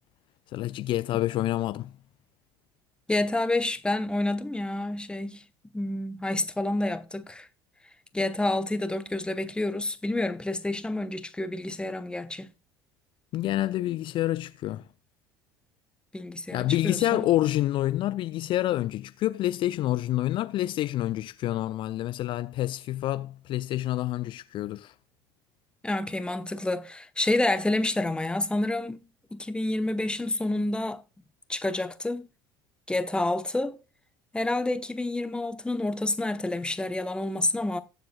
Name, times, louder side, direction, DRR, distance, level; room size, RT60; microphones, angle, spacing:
voice 1, 0.5-1.9 13.3-14.9 16.5-24.9, left 15 dB, 40° left, 0.4 m, -28 dB
voice 2, 3.1-5.4 5.7-7.5 8.1-12.5 16.1-17.3 25.8-29.0 29.3-31.0 31.5-32.3 32.9-33.8 34.3-37.8, left 2 dB, 10° left, 1.0 m, -28 dB
20.5 x 7.6 x 2.3 m
figure-of-eight pair, 65°, 12 cm